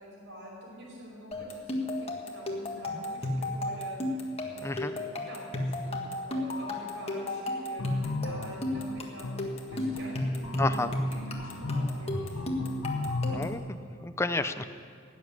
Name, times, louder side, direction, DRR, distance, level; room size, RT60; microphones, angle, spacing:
voice 1, 0.0-4.0 4.4-9.4 9.7-10.7 11.2-12.5, equal, 60° right, -2 dB, 5.0 m, -46 dB
sound 1, 1.3-13.6, left 1 dB, 30° left, 1.4 m, -33 dB
sound 2, 7.8-13.5, left 3 dB, 85° left, 1.2 m, -36 dB
voice 2, 10.6-10.9 13.3-14.6, left 2 dB, 15° left, 9 dB, 0.5 m, -31 dB
17.0 x 7.3 x 9.7 m, 2.2 s
head